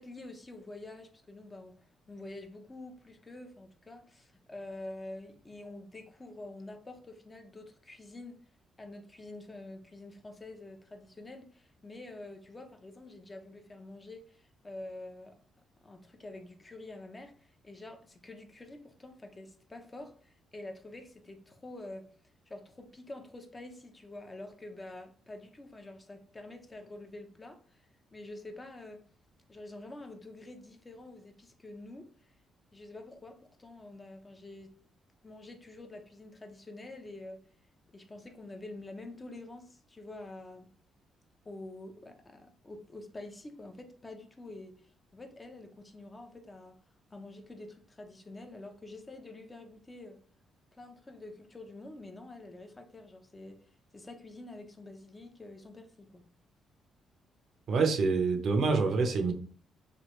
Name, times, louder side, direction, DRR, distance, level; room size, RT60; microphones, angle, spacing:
voice 1, 0.0-8.4 8.8-15.4 15.8-22.2 22.5-29.0 29.5-32.3 32.7-34.8 35.2-37.5 37.9-40.7 41.4-46.8 47.1-50.2 50.7-56.3, left 2 dB, 25° left, 0.6 m, -47 dB
voice 2, 57.7-59.3, right 4 dB, 60° right, 0.6 m, -26 dB
3.2 x 2.3 x 3.0 m
cardioid pair, 90°, 0 cm